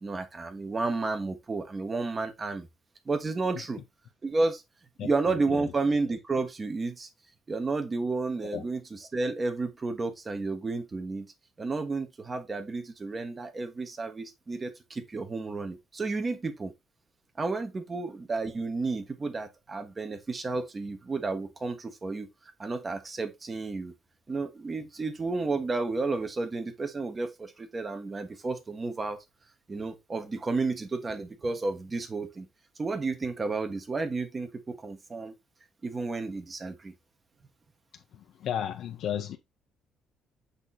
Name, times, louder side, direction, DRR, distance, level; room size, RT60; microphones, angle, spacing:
voice 1, 0.0-2.7 3.1-3.8 4.2-4.6 5.0-7.1 7.5-11.3 11.6-16.7 17.4-22.3 22.6-23.9 24.3-29.2 29.7-32.5 32.8-35.3 35.8-36.9, right 3 dB, 20° right, 1.1 m, -31 dB
voice 2, 38.4-39.4, left 9 dB, 60° left, 0.8 m, -32 dB
8.2 x 3.0 x 4.1 m
cardioid pair, 150°, 0 cm